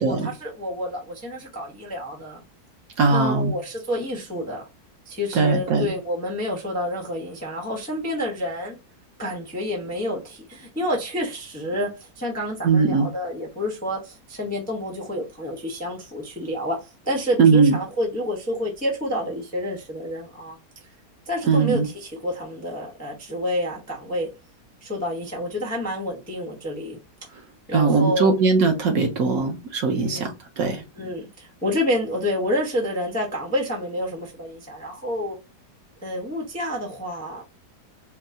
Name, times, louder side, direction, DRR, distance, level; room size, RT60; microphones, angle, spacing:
voice 1, 0.0-2.4 3.1-4.7 5.1-8.8 9.2-20.6 21.3-24.3 24.8-27.0 27.7-28.3 30.0-30.3 30.9-35.4 36.0-37.4, left 1 dB, 10° left, 0.6 m, -29 dB
voice 2, 3.0-3.5 5.3-5.9 12.6-13.1 17.4-17.8 21.5-21.9 27.7-30.8, right 4 dB, 65° right, 1.2 m, -20 dB
4.5 x 2.1 x 2.6 m
omnidirectional pair, 1.8 m